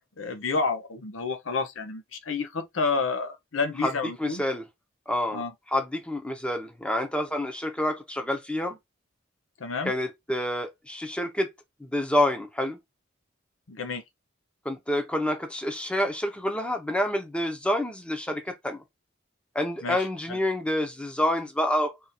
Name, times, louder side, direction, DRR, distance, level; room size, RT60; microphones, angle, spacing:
voice 1, 0.2-4.4 5.3-5.5 9.6-9.9 13.7-14.0 19.8-20.0 20.3-20.4, left 4 dB, 85° left, 0.7 m, -29 dB
voice 2, 4.2-4.6 5.1-5.4 5.7-8.8 9.8-11.5 11.8-12.8 14.6-18.8 19.5-22.0, left 1 dB, 5° left, 0.8 m, -28 dB
3.6 x 2.6 x 4.2 m
head